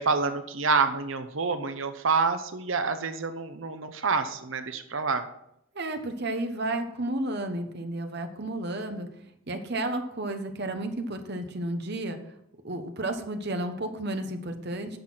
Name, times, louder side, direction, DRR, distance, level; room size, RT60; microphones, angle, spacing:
voice 1, 0.0-5.2, right 4 dB, 70° right, 9 dB, 0.8 m, -27 dB
voice 2, 5.7-9.1 9.5-12.2 12.6-15.0, right 1 dB, 50° right, 6 dB, 1.2 m, -32 dB
10.0 x 6.7 x 5.8 m, 0.78 s
head